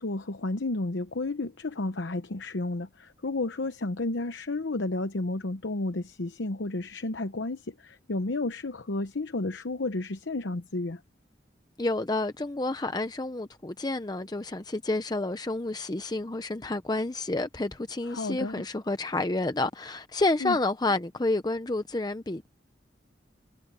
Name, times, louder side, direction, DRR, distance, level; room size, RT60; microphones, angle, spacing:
voice 1, 0.0-11.0 18.1-18.6 20.4-20.6, left 2 dB, 85° left, 0.9 m, -32 dB
voice 2, 11.8-22.5, left 2 dB, 20° left, 0.7 m, -29 dB
head